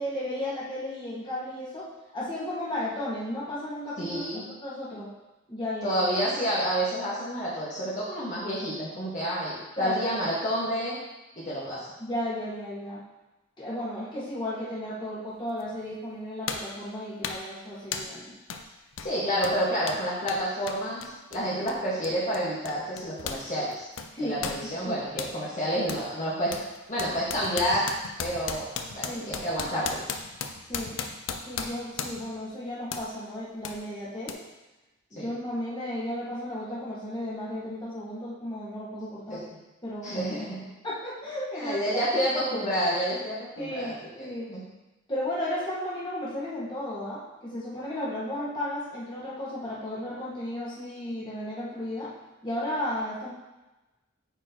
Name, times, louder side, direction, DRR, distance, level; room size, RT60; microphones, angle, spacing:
voice 1, 0.0-1.9 2.1-5.1 5.5-6.0 9.8-10.1 12.0-13.0 13.6-18.4 24.1-25.0 29.0-29.4 30.7-31.0 31.5-34.4 35.1-39.4 39.8-40.4 40.8-42.6 43.6-44.5 45.1-52.1 52.4-53.3, left 1 dB, 25° left, -8 dB, 1.7 m, -34 dB
voice 2, 4.0-4.4 5.8-11.0 11.4-11.9 19.0-23.9 24.2-26.6 26.9-27.8 28.2-30.1 35.1-35.3 39.3-39.4 40.0-40.7 41.5-44.6, equal, 40° left, -9 dB, 1.5 m, -29 dB
sound 1, 15.6-15.7 16.5-16.8 17.2-17.5 17.9-18.2 18.5-18.7 18.9-23.5 23.7-25.4 25.9-26.1 26.5-32.4 32.9-33.1 33.6-33.8 34.3-34.4, left 6 dB, 75° left, 0.5 m, -36 dB
8.7 x 4.3 x 2.9 m, 1.1 s
head